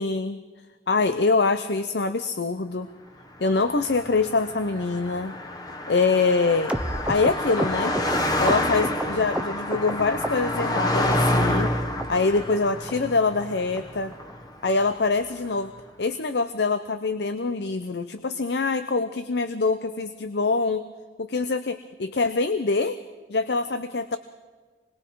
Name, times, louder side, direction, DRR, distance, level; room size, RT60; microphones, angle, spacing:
voice 1, 0.0-0.4 0.9-2.9 3.4-5.4 5.9-6.7 7.1-8.0 8.4-11.7 12.1-14.1 14.6-15.7 16.0-20.8 21.2-23.0 23.3-24.2, left 4 dB, 75° left, 10 dB, 0.8 m, -24 dB
Car passing by, 3.5-15.0, left 1 dB, 20° left, 1.3 m, -28 dB
sound 1, 6.7-9.9 10.2-10.8 11.1-11.7 12.0-12.1 12.3-12.6 12.9-13.0 13.2-13.4 13.8-13.9 14.1-14.3 14.6-14.7 15.0-15.2 15.5-15.6 15.9-16.1 16.4-16.5, right 1 dB, 5° right, 0.8 m, -31 dB
27.5 x 21.5 x 4.7 m, 1.4 s
head